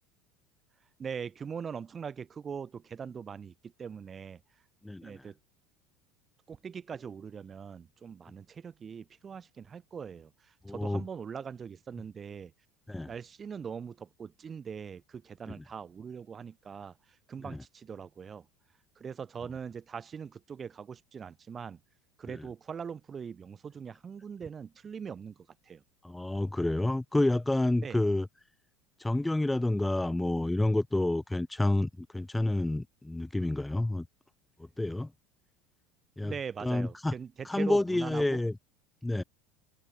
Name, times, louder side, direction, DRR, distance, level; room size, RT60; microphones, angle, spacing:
voice 1, 1.0-4.4 5.0-5.4 6.5-12.5 13.0-16.9 17.3-18.5 19.0-21.8 22.2-25.4 25.7-25.8 27.8-28.0 36.2-38.4, right 6 dB, 25° right, 3.9 m, -41 dB
voice 2, 4.8-5.2 10.6-11.0 12.9-13.1 15.5-15.6 17.5-17.6 22.3-22.4 26.0-28.3 29.0-34.1 34.8-35.1 36.2-36.3 36.6-37.1 37.4-38.5 39.0-39.2, left 2 dB, 5° left, 0.8 m, -29 dB
supercardioid pair, 120°, 0 cm